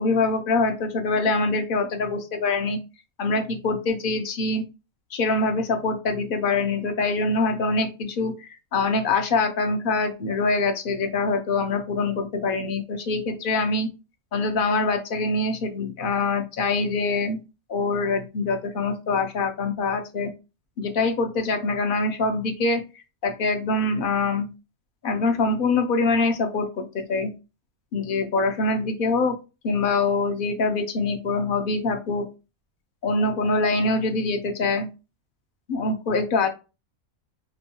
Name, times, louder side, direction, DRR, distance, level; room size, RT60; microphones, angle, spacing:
voice 1, 0.0-2.8 3.2-4.6 5.1-13.9 14.3-17.4 17.7-20.3 20.8-22.8 23.2-24.5 25.0-27.3 27.9-29.4 29.6-32.3 33.0-34.9 35.7-36.5, left 3 dB, 55° left, 6 dB, 0.6 m, -24 dB
5.3 x 2.2 x 2.7 m, 0.29 s
omnidirectional pair, 1.5 m